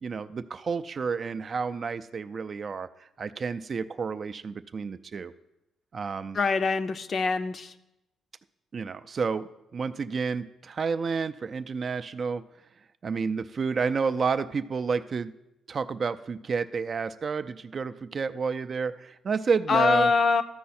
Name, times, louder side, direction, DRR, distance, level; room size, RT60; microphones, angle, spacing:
voice 1, 0.0-2.9 3.2-5.3 5.9-6.4 8.7-12.4 13.0-15.3 15.7-20.1, right 5 dB, 45° right, 11 dB, 0.3 m, -30 dB
voice 2, 6.3-7.7 19.7-20.4, left 4 dB, 45° left, 9 dB, 0.5 m, -24 dB
13.5 x 4.6 x 4.2 m, 0.89 s
cardioid pair, 90°, 0 cm